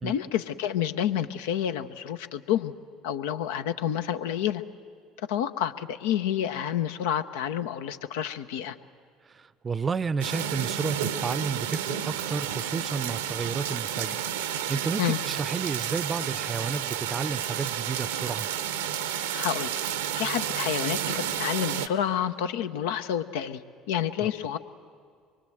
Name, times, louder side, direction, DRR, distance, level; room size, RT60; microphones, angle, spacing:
voice 1, 0.0-2.7 3.0-4.6 5.3-8.8 15.0-15.2 19.3-19.7 20.2-23.6 23.9-24.6, left 10 dB, 75° left, 0.7 m, -29 dB
voice 2, 9.3-18.5 24.2-24.3, right 5 dB, 30° right, 0.6 m, -32 dB
sound 1, 10.2-21.9, right 9 dB, 80° right, 0.8 m, -31 dB
24.0 x 23.0 x 7.8 m
hypercardioid pair, 65°, 0 cm